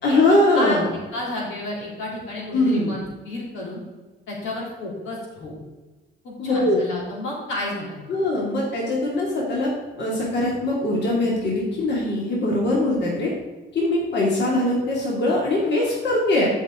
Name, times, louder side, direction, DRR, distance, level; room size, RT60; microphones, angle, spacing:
voice 1, 0.0-0.8 2.5-2.9 6.4-6.8 8.1-9.7 10.0-13.3 13.7-16.5, left 2 dB, 60° left, -3 dB, 2.8 m, -21 dB
voice 2, 0.5-3.8 4.3-5.6 6.2-8.0, left 1 dB, 85° left, -4 dB, 3.5 m, -31 dB
13.0 x 5.7 x 3.9 m, 1.2 s
cardioid pair, 90°, 20 cm